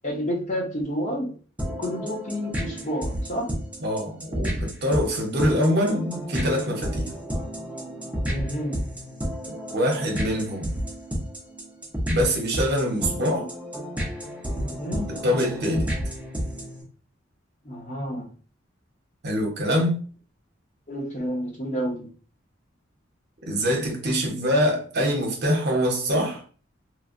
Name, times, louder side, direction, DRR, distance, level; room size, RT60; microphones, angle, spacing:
voice 1, 0.0-1.3 1.8-3.5 8.2-8.8 14.6-15.1 17.6-18.3 20.9-22.1, equal, 40° left, 0.9 m, -30 dB
sound 1, 1.6-16.8, equal, 5° right, 0.6 m, -31 dB
voice 2, 3.8-7.1 9.7-10.7 12.1-13.5 15.1-15.9 19.2-20.0 23.5-26.4, equal, 55° right, 0.8 m, -24 dB
3.1 x 2.2 x 2.5 m
head